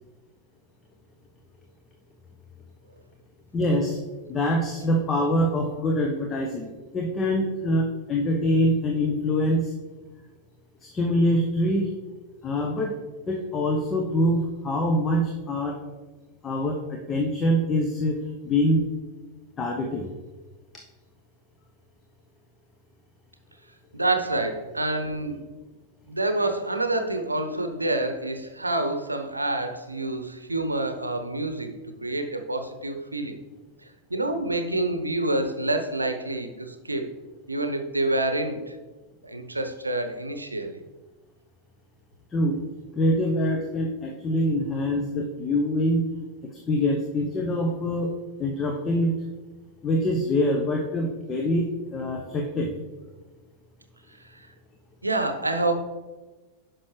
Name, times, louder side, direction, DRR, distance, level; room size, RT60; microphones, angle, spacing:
voice 1, 3.5-4.0 4.3-6.7 6.9-9.7 10.8-11.9 12.4-13.0 13.3-15.8 16.4-18.2 18.4-18.8 19.6-20.1 42.3-42.6 43.0-46.0 46.5-48.1 48.4-49.1 49.8-51.6 51.9-52.7, equal, 20° left, 2 dB, 0.8 m, -24 dB
voice 2, 23.9-25.4 26.1-31.7 32.0-33.4 34.1-37.1 37.5-38.7 39.2-40.8 54.3-54.5 55.0-55.7, right 2 dB, 80° right, 7 dB, 0.7 m, -27 dB
9.5 x 6.1 x 3.2 m, 1.3 s
figure-of-eight pair, 90°, 0 cm